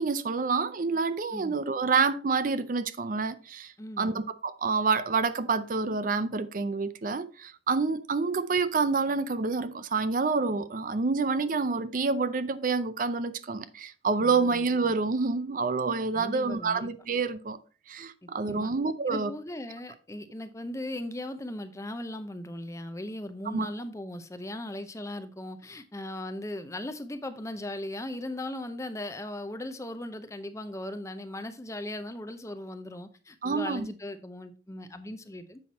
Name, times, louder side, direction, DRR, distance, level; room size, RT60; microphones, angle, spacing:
voice 1, 0.0-17.6 17.9-19.3 23.5-23.7 33.4-33.9, right 4 dB, 45° right, 0.5 m, -28 dB
voice 2, 3.8-4.2 14.2-14.6 16.1-16.9 18.2-18.7 19.1-35.6, left 1 dB, 15° left, 0.6 m, -38 dB
7.7 x 5.8 x 4.1 m
head